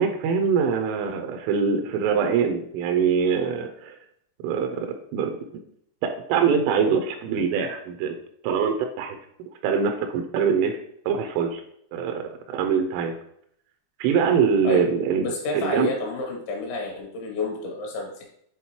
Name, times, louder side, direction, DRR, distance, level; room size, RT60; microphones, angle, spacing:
voice 1, 0.0-4.0 4.4-5.4 6.0-8.2 8.4-9.2 9.6-10.8 11.1-11.6 11.9-12.2 12.5-13.1 14.0-15.3 15.5-15.9, right 6 dB, 85° right, 5 dB, 3.1 m, -23 dB
voice 2, 15.2-18.3, left 3 dB, 75° left, 0 dB, 3.7 m, -30 dB
8.5 x 3.9 x 3.0 m, 0.69 s
omnidirectional pair, 5.6 m